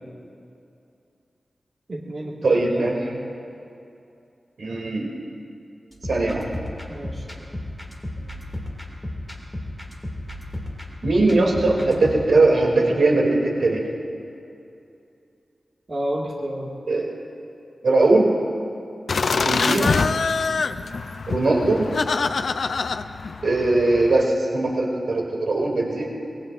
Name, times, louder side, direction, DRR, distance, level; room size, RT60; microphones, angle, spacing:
voice 1, 1.9-2.9 6.9-7.2 15.9-16.7, right 1 dB, 45° right, -3 dB, 2.0 m, -30 dB
voice 2, 2.4-3.2 4.6-5.1 6.1-6.5 11.0-13.8 16.9-17.1 17.8-18.3 19.4-19.9 21.3-21.9 23.4-26.1, right 2 dB, 85° right, -2 dB, 2.8 m, -20 dB
sound 1, 5.9-12.3, left 1 dB, 5° left, 2.4 m, -34 dB
sound 2, 19.1-24.3, left 4 dB, 75° left, 0.5 m, -25 dB
24.0 x 22.0 x 2.6 m, 2.7 s
wide cardioid pair, 110°, 0 cm